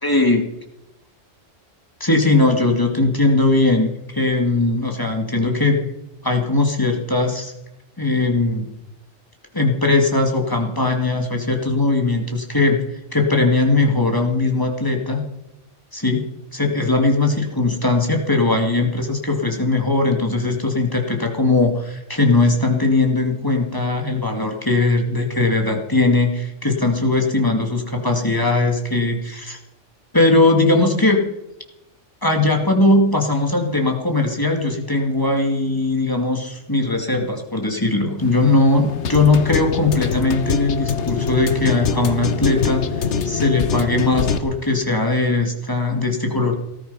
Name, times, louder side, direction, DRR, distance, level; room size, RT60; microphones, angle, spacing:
voice 1, 0.0-0.5 2.0-5.8 6.2-7.5 8.0-8.7 9.5-12.8 13.1-15.2 15.9-16.3 16.5-29.6 30.1-31.3 32.2-46.5, left 2 dB, 15° left, 2 dB, 2.4 m, -19 dB
sound 1, 38.2-44.4, left 6 dB, 65° left, 1.3 m, -24 dB
18.5 x 14.0 x 5.5 m, 0.90 s
omnidirectional pair, 1.3 m